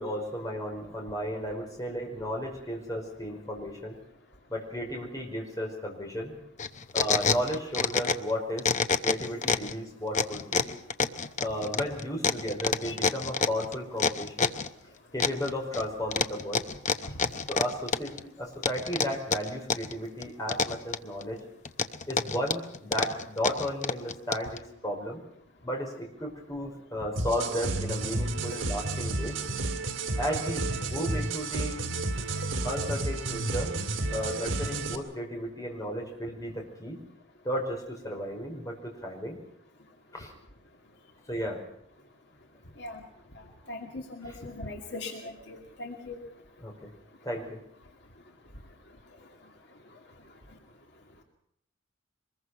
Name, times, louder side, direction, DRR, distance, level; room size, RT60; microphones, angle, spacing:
voice 1, 0.0-4.0 4.5-6.3 6.9-8.7 9.0-10.7 11.4-14.5 15.1-16.7 17.5-21.4 22.1-25.2 25.6-29.4 30.2-31.8 32.1-32.3 32.6-33.7 34.1-37.0 37.4-39.4 40.1-40.3 41.3-41.6 46.6-46.9 47.2-47.6, equal, 20° left, 0 dB, 5.3 m, -34 dB
sound 1, 6.6-8.3 8.6-9.7 10.1-14.7 15.2-15.8 16.1-18.2 18.6-19.9 20.2-21.2 21.7-24.6, left 5 dB, 40° left, 0.9 m, -27 dB
sound 2, 27.2-35.0, right 2 dB, 80° right, 2.3 m, -31 dB
voice 2, 43.7-46.2, left 2 dB, 60° left, 2 dB, 2.4 m, -40 dB
24.0 x 21.0 x 5.7 m, 0.75 s
head